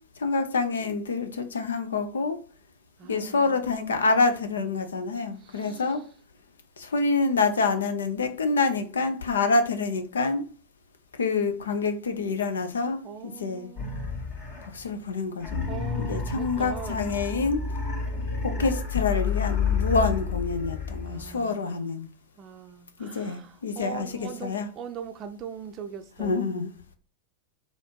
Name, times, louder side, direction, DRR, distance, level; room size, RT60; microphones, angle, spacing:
voice 1, 0.2-2.4 3.0-6.0 6.8-10.4 11.1-13.7 14.6-15.7 16.0-17.6 18.4-22.1 23.0-24.7 26.2-26.7, left 4 dB, 70° left, 0.6 m, -27 dB
voice 2, 3.0-4.0 5.4-6.1 13.0-14.3 15.7-17.2 21.1-21.9 22.4-26.5, right 8 dB, 35° right, 0.5 m, -41 dB
sound 1, 13.8-14.9 15.4-21.4, left 5 dB, 45° left, 1.9 m, -30 dB
4.1 x 2.6 x 4.6 m
figure-of-eight pair, 90°, 0 cm